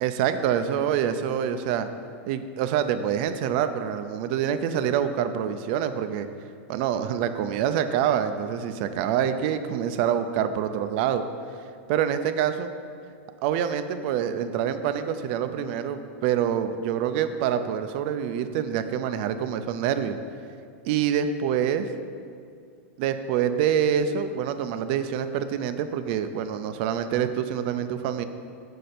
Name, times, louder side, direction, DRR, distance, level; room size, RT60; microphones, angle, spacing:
voice 1, 0.0-1.9 2.3-6.3 6.7-11.2 11.9-12.7 13.4-20.2 20.8-21.8 23.0-28.2, right 9 dB, 50° right, 10 dB, 0.5 m, -26 dB
6.6 x 4.2 x 6.6 m, 2.2 s
supercardioid pair, 145°, 7 cm